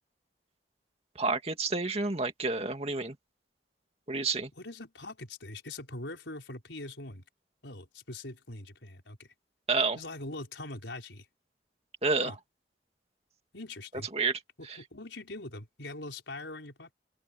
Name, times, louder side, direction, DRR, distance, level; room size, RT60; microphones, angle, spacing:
voice 1, 1.2-3.1 4.1-4.5 9.7-10.0 12.0-12.3 14.1-14.3, right 3 dB, 35° right, 2.4 m, -29 dB
voice 2, 4.6-7.2 7.6-9.3 9.9-11.3 12.2-12.4 13.5-14.1 14.6-16.9, left 2 dB, 85° left, 4.9 m, -42 dB
open air
head